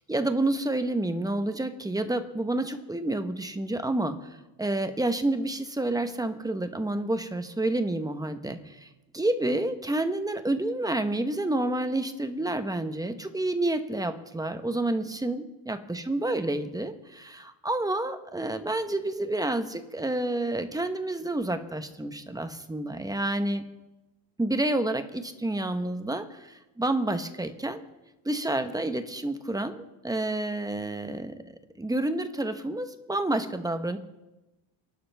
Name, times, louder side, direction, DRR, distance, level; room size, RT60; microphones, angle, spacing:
voice 1, 0.1-4.3 4.6-23.6 24.4-27.8 28.2-34.0, right 1 dB, 10° right, 8 dB, 1.1 m, -29 dB
28.5 x 12.0 x 3.5 m, 1.0 s
cardioid pair, 125°, 45 cm